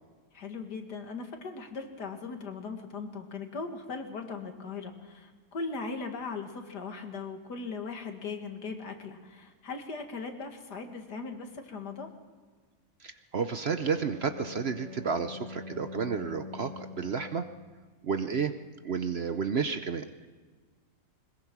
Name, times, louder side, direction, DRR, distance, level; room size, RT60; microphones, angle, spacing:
voice 1, 0.3-12.1, left 4 dB, 85° left, 5 dB, 2.5 m, -39 dB
voice 2, 13.0-17.5 18.0-18.5 18.8-20.3, right 6 dB, 50° right, 9 dB, 0.8 m, -31 dB
Bowed string instrument, 13.5-17.6, left 3 dB, 30° right, 3.7 m, -45 dB
21.5 x 20.5 x 6.0 m, 1.4 s
omnidirectional pair, 1.7 m